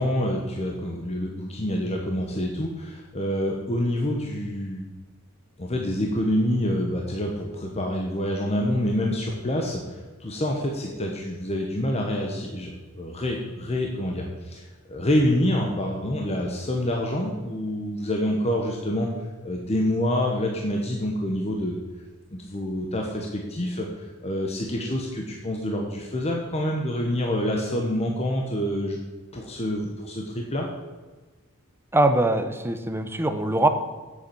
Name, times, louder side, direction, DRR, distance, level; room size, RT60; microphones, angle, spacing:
voice 1, 0.0-4.8 5.6-19.1 19.4-21.8 22.5-29.0 29.3-30.7, left 1 dB, 30° left, 1 dB, 1.2 m, -27 dB
voice 2, 31.9-33.7, right 2 dB, 10° right, 8 dB, 0.8 m, -22 dB
8.5 x 7.1 x 7.8 m, 1.3 s
head